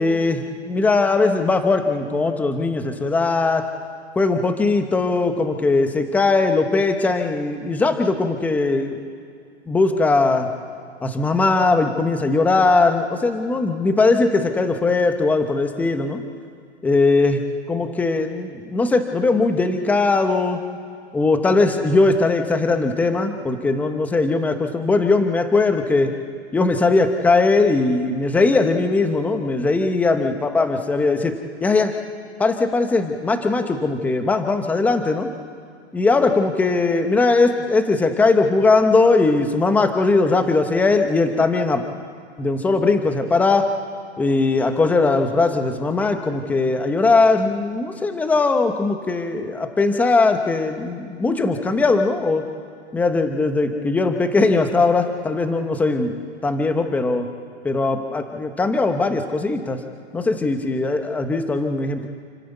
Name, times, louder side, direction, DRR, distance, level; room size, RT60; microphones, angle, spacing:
voice 1, 0.0-3.7 4.2-9.0 9.7-10.5 11.0-16.2 16.8-17.4 17.7-20.6 21.1-26.1 26.5-31.3 31.6-31.9 32.4-35.3 35.9-41.8 42.4-43.7 44.2-52.4 52.9-56.2 56.4-57.3 57.6-59.8 60.1-62.1, left 3 dB, 5° left, 7 dB, 0.9 m, -19 dB
29.5 x 11.0 x 8.2 m, 2.3 s
hypercardioid pair, 155°, 34 cm